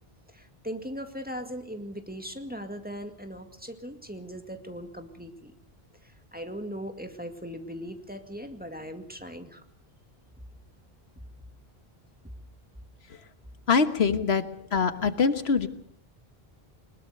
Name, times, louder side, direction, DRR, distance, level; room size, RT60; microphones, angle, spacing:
voice 1, 0.3-5.5 6.0-9.6, equal, 10° right, 6 dB, 2.1 m, -39 dB
voice 2, 13.7-14.4 14.7-15.7, left 5 dB, 80° left, 11 dB, 1.5 m, -23 dB
21.5 x 20.5 x 6.7 m, 0.63 s
omnidirectional pair, 1.0 m